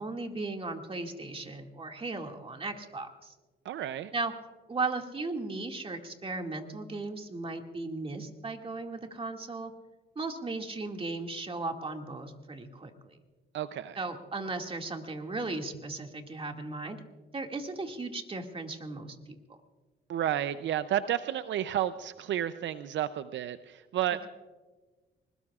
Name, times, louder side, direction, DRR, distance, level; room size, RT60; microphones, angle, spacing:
voice 1, 0.0-3.3 4.1-4.3 4.7-9.7 10.2-13.2 14.0-17.0 17.3-19.2, right 3 dB, 30° right, 3 dB, 2.2 m, -36 dB
voice 2, 3.6-4.1 13.5-14.0 20.1-24.3, right 11 dB, 70° right, 12 dB, 0.6 m, -31 dB
24.5 x 20.5 x 2.4 m, 1.3 s
cardioid pair, 90°, 20 cm